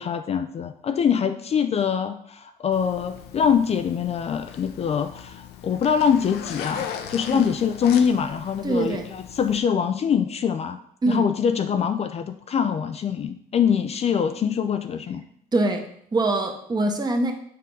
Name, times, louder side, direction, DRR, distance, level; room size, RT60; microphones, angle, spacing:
voice 1, 0.0-10.8 11.1-15.2, left 7 dB, 40° left, 9 dB, 0.4 m, -24 dB
Zipper (clothing), 2.7-9.6, left 8 dB, 75° left, 0.8 m, -38 dB
voice 2, 8.6-9.1 11.0-11.3 15.5-17.3, right 2 dB, 25° right, 3 dB, 1.1 m, -24 dB
6.6 x 3.7 x 5.4 m, 0.67 s
cardioid pair, 110°, 17 cm